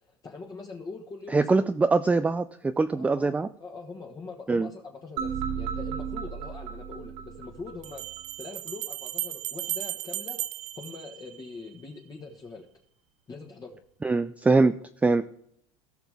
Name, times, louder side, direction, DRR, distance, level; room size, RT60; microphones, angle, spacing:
voice 1, 0.0-1.7 2.9-8.0 8.4-10.4 10.8-12.7 13.3-13.8, left 3 dB, 25° left, -1 dB, 1.4 m, -42 dB
voice 2, 1.3-3.5 4.5-4.7 14.0-15.2, right 3 dB, 10° right, 11 dB, 0.3 m, -23 dB
sound 1, 5.2-8.2, right 7 dB, 70° right, 2.5 m, -34 dB
Bell, 6.2-6.3 7.8-11.8, right 14 dB, 50° right, 0.7 m, -36 dB
17.0 x 6.0 x 3.5 m, 0.69 s
supercardioid pair, 125°, 15 cm